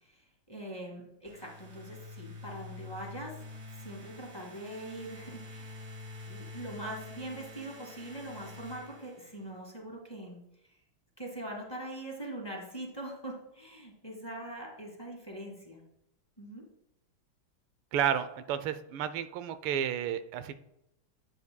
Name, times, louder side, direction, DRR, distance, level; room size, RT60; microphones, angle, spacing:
voice 1, 0.0-3.4 3.7-5.7 6.3-10.4 11.2-15.8 16.4-16.6, right 1 dB, 15° left, -1 dB, 1.6 m, -42 dB
sound 1, 1.2-9.6, left 2 dB, 30° right, 2.2 m, -47 dB
voice 2, 17.9-20.6, right 9 dB, 90° right, 12 dB, 1.4 m, -31 dB
12.0 x 8.1 x 2.2 m, 0.84 s
omnidirectional pair, 2.3 m